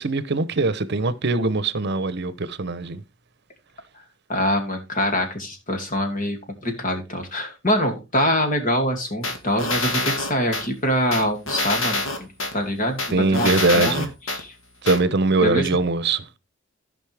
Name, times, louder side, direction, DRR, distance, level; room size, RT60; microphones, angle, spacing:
voice 1, 0.0-3.0 13.1-14.1 14.8-16.2, right 3 dB, 60° right, 0.9 m, -22 dB
voice 2, 4.3-13.0 13.3-14.5 15.4-15.7, equal, 45° left, 2.5 m, -24 dB
sound 1, 9.2-10.7 11.1-12.5 13.0-14.4 14.9-15.0, left 2 dB, 85° left, 2.0 m, -25 dB
15.5 x 5.3 x 3.4 m
head